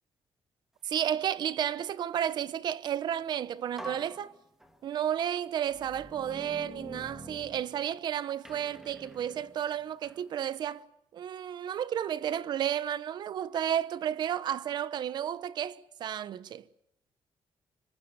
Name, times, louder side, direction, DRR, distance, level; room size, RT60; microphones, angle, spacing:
voice 1, 0.8-4.3 4.8-10.8 11.1-16.7, right 10 dB, 55° right, 1.0 m, -32 dB
sound 1, 3.2-3.3 3.8-5.1 5.7-8.0 8.4-10.3, equal, 5° right, 2.6 m, -47 dB
26.5 x 25.5 x 7.2 m
cardioid pair, 175°, 9 cm